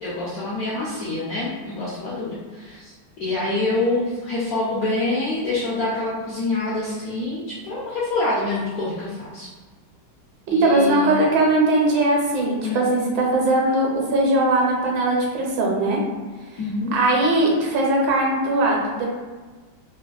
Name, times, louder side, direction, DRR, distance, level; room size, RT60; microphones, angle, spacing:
voice 1, 0.0-9.5 10.5-11.2 12.6-12.8 16.6-16.9, left 2 dB, 75° left, -7 dB, 0.8 m, -26 dB
voice 2, 10.5-16.0 16.9-19.1, right 2 dB, 75° right, -2 dB, 1.3 m, -20 dB
3.3 x 2.4 x 2.2 m, 1.3 s
omnidirectional pair, 2.1 m